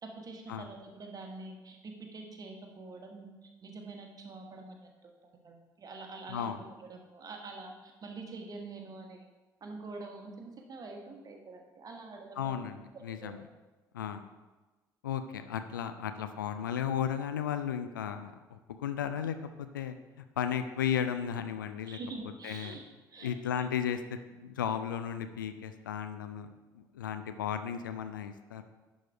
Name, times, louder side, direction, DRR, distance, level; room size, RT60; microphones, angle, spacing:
voice 1, 0.0-5.1 5.4-9.3 9.6-12.7 12.9-13.5 21.9-23.3, right 3 dB, 35° right, 2 dB, 1.4 m, -46 dB
voice 2, 6.3-6.6 12.4-13.4 13.9-14.2 15.0-22.0 22.4-22.8 23.2-28.6, left 8 dB, 75° left, 9 dB, 0.4 m, -35 dB
11.0 x 4.1 x 4.7 m, 1.2 s
figure-of-eight pair, 50°, 11 cm